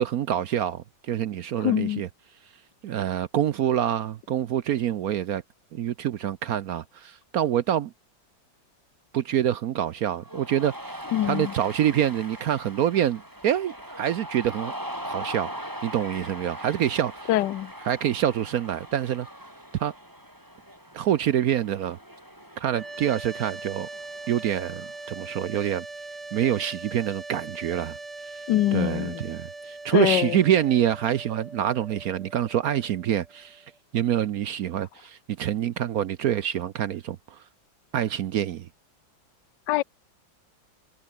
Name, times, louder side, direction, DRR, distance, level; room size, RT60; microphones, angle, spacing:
voice 1, 0.0-2.1 2.8-5.4 5.7-7.9 9.1-14.7 15.0-15.5 15.8-17.3 17.8-19.3 19.8-19.9 20.9-22.0 22.6-23.9 24.3-25.8 26.3-28.0 28.7-33.6 33.9-37.4 37.9-38.7, right 10 dB, 65° right, 0.9 m, -26 dB
voice 2, 1.6-2.0 11.1-11.5 17.3-17.7 28.5-29.2 29.9-30.4 39.7-39.8, left 14 dB, 70° left, 1.3 m, -23 dB
Cheering, 10.2-25.1, equal, 10° right, 7.6 m, -41 dB
sound 1, 22.7-33.8, right 3 dB, 35° right, 4.0 m, -41 dB
omnidirectional pair, 2.1 m